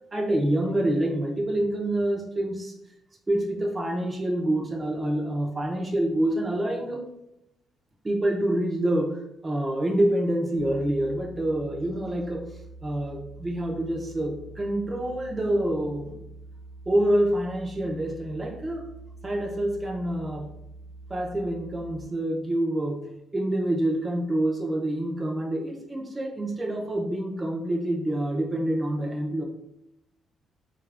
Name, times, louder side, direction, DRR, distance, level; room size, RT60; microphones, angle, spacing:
voice 1, 0.1-2.8 3.3-7.1 8.0-12.5 12.8-16.2 16.9-18.9 19.2-20.5 21.1-29.4, right 1 dB, 25° right, 0 dB, 0.5 m, -27 dB
sound 1, 10.6-22.0, right 3 dB, 30° left, 0.9 m, -45 dB
3.7 x 2.4 x 3.3 m, 0.84 s
cardioid pair, 90°, 0 cm